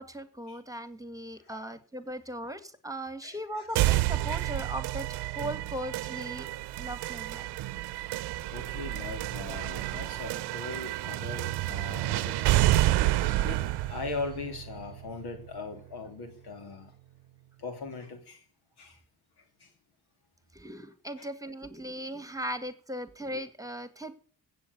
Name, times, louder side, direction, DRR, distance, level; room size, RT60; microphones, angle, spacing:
voice 1, 0.0-6.5 6.8-7.5 20.5-24.2, right 1 dB, 10° right, 1.9 m, -38 dB
voice 2, 1.5-1.8 3.2-3.9 8.4-12.7 13.4-16.9 17.6-18.4 18.8-19.0 19.6-19.7 21.2-21.3, left 4 dB, 75° left, 3.2 m, -40 dB
sound 1, 3.7-15.7, right 15 dB, 85° right, 0.8 m, -29 dB
16.5 x 7.9 x 6.8 m
supercardioid pair, 65°, 39 cm